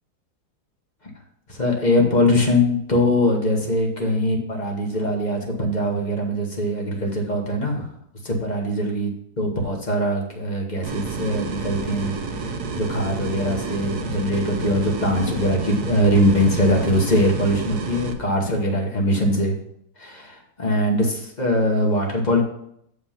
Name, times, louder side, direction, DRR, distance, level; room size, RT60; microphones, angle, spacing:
voice 1, 1.5-7.9 8.2-9.1 9.4-12.1 12.7-19.5 20.0-22.4, left 1 dB, 25° left, 0 dB, 1.3 m, -22 dB
sound 1, 10.8-18.1, right 4 dB, 65° right, 1.2 m, -30 dB
7.3 x 5.0 x 5.6 m, 0.71 s
omnidirectional pair, 2.1 m